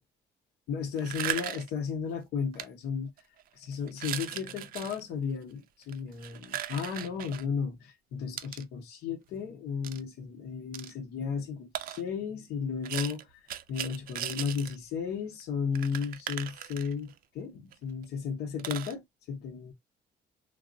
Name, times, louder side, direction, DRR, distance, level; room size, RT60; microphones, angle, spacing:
voice 1, 0.7-3.1 3.7-13.2 13.7-19.0 19.3-19.7, left 6 dB, 75° left, 0.8 m, -34 dB
sound 1, 1.0-1.8 2.5-2.7 3.2-3.4 3.9-5.0 5.8-7.5 8.4-8.6 9.8-10.0 10.7-10.9 11.8-12.0 12.8-14.8 15.1-15.2 15.4-15.5 15.8-17.2 17.7-17.8 18.0-18.1 18.6-18.9, right 12 dB, 60° right, 0.4 m, -37 dB
3.3 x 2.1 x 2.4 m
cardioid pair, 110°, 17 cm